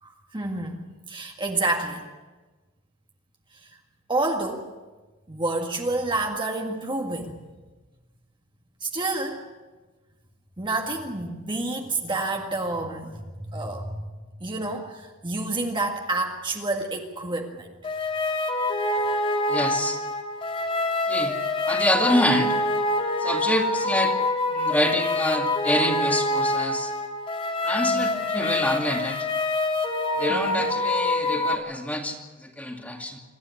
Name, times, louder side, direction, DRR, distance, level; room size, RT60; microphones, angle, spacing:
voice 1, 0.0-2.1 3.5-3.8 4.1-4.7 5.3-7.4 8.8-9.4 10.6-14.1 14.4-17.7 27.8-28.2 30.3-30.6, right 2 dB, 20° right, 2 dB, 1.9 m, -29 dB
sound 1, 17.8-31.5, left 2 dB, 25° left, 1.7 m, -26 dB
voice 2, 19.5-20.0 21.1-21.4 21.7-22.6 23.2-24.2 24.5-26.9 27.6-29.3 30.2-33.2, left 1 dB, 5° left, 3 dB, 2.4 m, -26 dB
26.5 x 13.0 x 9.8 m, 1.2 s
head